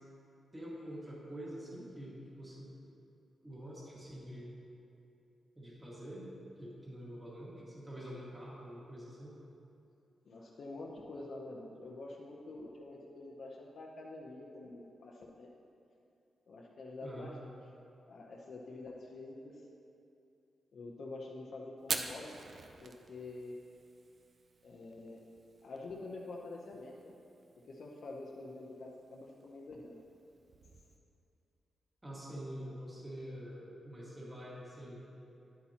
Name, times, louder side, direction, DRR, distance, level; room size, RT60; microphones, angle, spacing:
voice 1, 0.5-2.7 3.4-4.6 5.6-6.3 6.6-9.3 17.0-17.4 32.0-35.0, equal, 15° right, -6 dB, 1.9 m, -46 dB
voice 2, 10.3-15.5 16.5-17.5 18.1-19.6 20.7-22.3 22.8-23.6 24.6-25.2 25.6-27.1 27.7-30.0, left 2 dB, 60° left, -3 dB, 0.7 m, -47 dB
Fire, 21.8-31.0, right 4 dB, 45° right, 0.5 m, -47 dB
10.5 x 8.4 x 2.9 m, 2.7 s
wide cardioid pair, 140°, 0 cm